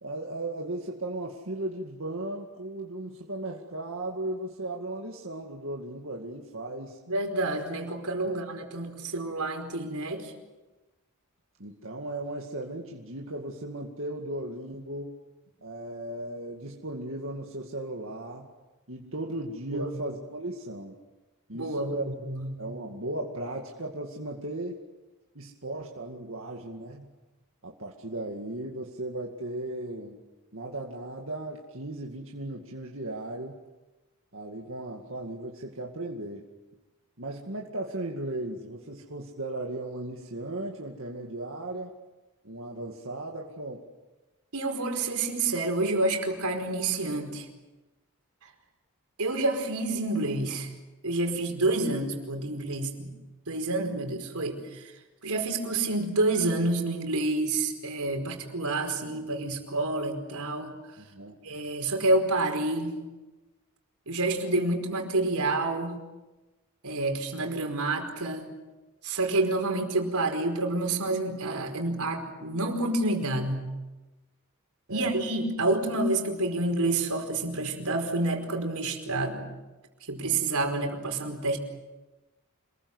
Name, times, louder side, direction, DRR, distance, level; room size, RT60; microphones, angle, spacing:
voice 1, 0.0-7.0 8.2-8.4 11.6-15.1 15.6-18.5 18.9-21.0 21.5-22.1 22.6-24.8 25.3-27.1 27.6-30.2 30.5-33.6 34.3-36.5 37.2-41.9 42.4-43.9 61.0-61.4 74.9-75.2, right 1 dB, 60° right, 0 dB, 2.2 m, -36 dB
voice 2, 7.1-10.3 19.7-19.8 21.5-22.6 44.5-47.5 49.2-50.7 51.0-53.1 53.5-54.8 55.2-60.8 61.4-62.9 64.1-66.0 66.8-68.5 69.0-73.7 74.9-79.5 80.1-81.6, right 2 dB, 90° right, 4 dB, 4.9 m, -28 dB
27.5 x 21.0 x 8.1 m, 1.1 s
head